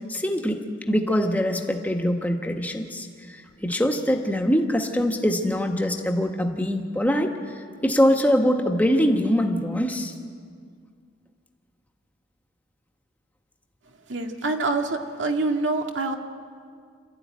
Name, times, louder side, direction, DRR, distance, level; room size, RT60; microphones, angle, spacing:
voice 1, 0.1-3.1 3.6-7.3 7.8-10.1, equal, 10° left, 3 dB, 1.5 m, -23 dB
voice 2, 14.1-16.2, right 3 dB, 80° right, 4 dB, 1.9 m, -26 dB
27.0 x 13.5 x 9.5 m, 2.1 s
head